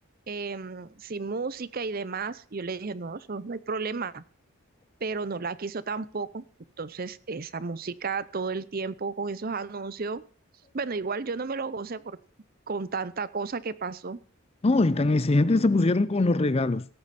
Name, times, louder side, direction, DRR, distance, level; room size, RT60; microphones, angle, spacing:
voice 1, 0.3-4.2 5.0-6.4 6.8-10.2 10.7-12.2 12.7-14.2, right 4 dB, 40° right, 0.6 m, -33 dB
voice 2, 14.6-16.9, left 2 dB, 25° left, 0.5 m, -22 dB
17.0 x 8.7 x 4.2 m
head